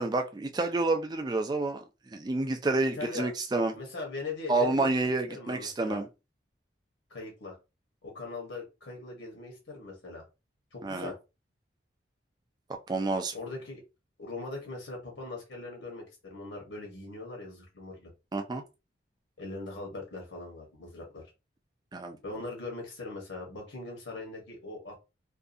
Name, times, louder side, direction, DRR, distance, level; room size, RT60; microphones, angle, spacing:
voice 1, 0.0-3.8 4.5-6.1 10.8-11.1 12.9-13.3 18.3-18.6 21.9-22.2, right 2 dB, 20° right, 0.3 m, -29 dB
voice 2, 3.0-3.3 3.7-4.9 5.3-6.0 7.1-7.6 8.0-10.2 10.7-11.2 13.3-13.8 14.2-18.1 19.4-21.2 22.2-25.0, left 3 dB, 75° left, 1.0 m, -40 dB
2.6 x 2.3 x 2.5 m
head